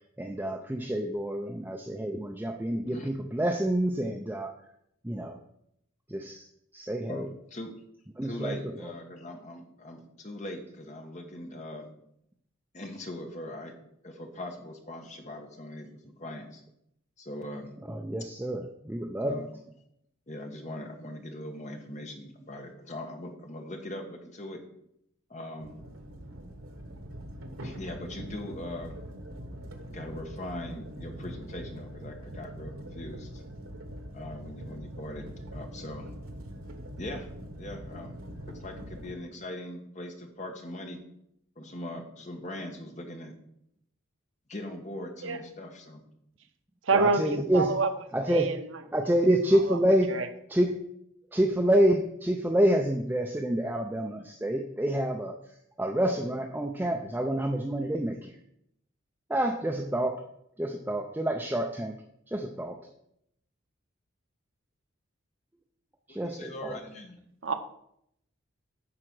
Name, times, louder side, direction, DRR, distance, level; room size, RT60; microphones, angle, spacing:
voice 1, 0.2-4.5 5.0-5.4 6.1-6.4 6.7-7.3 8.2-8.6 8.8-8.9 17.9-19.4 46.9-47.7 48.1-48.5 48.9-50.1 50.5-50.8 51.3-55.3 55.8-58.3 59.3-60.2 60.6-61.9 62.3-62.8 66.1-66.8, right 1 dB, 10° right, 2 dB, 0.5 m, -27 dB
voice 2, 8.2-11.9 12.7-13.7 14.0-16.6 17.2-17.7 19.2-19.5 20.3-24.6 25.3-25.8 27.6-29.0 29.9-33.4 34.1-35.2 35.5-36.1 37.0-37.3 37.6-38.2 38.4-41.0 41.6-43.3 44.5-46.0 66.1-67.2, left 1 dB, 35° left, 3 dB, 1.3 m, -40 dB
sound 1, 25.6-39.1, equal, 85° right, 1.2 m, -43 dB
voice 3, 46.8-47.9 48.3-48.6 49.7-49.8 50.1-50.3 67.4-67.5, right 4 dB, 70° right, 8 dB, 0.8 m, -26 dB
9.6 x 4.4 x 6.1 m, 0.75 s
head